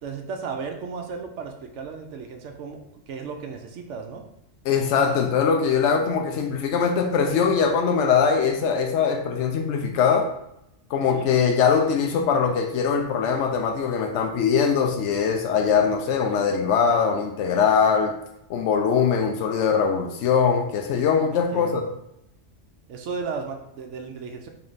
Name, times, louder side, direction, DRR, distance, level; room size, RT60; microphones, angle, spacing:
voice 1, 0.0-4.2 11.1-11.3 16.0-16.5 16.9-17.2 21.3-21.9 22.9-24.5, right 5 dB, 80° right, 4 dB, 0.9 m, -35 dB
voice 2, 4.7-10.3 10.9-18.2 18.5-21.8, left 6 dB, 75° left, 4 dB, 0.9 m, -22 dB
3.9 x 3.2 x 3.9 m, 0.82 s
omnidirectional pair, 1.2 m